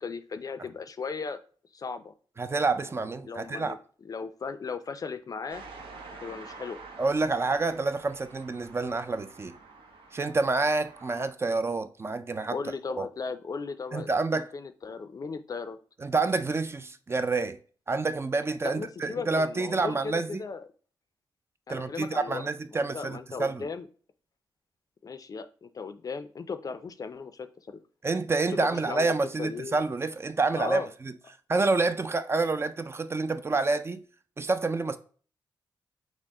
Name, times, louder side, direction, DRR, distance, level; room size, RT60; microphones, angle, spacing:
voice 1, 0.0-1.4 1.7-2.1 3.2-5.6 6.2-6.8 12.5-14.1 14.5-15.8 18.6-20.7 21.7-22.4 22.7-23.9 25.0-27.8 28.5-29.8 30.6-30.9, left 5 dB, 45° left, 0.4 m, -37 dB
voice 2, 2.4-3.8 7.0-9.5 10.1-12.6 13.0-13.1 13.9-14.5 16.0-17.6 17.9-20.4 21.7-23.7 28.0-31.1 31.5-34.0 34.4-35.0, right 3 dB, 30° right, 0.4 m, -28 dB
sound 1, 5.5-11.3, right 4 dB, 90° right, 0.7 m, -48 dB
6.0 x 2.1 x 3.7 m
cardioid pair, 90°, 9 cm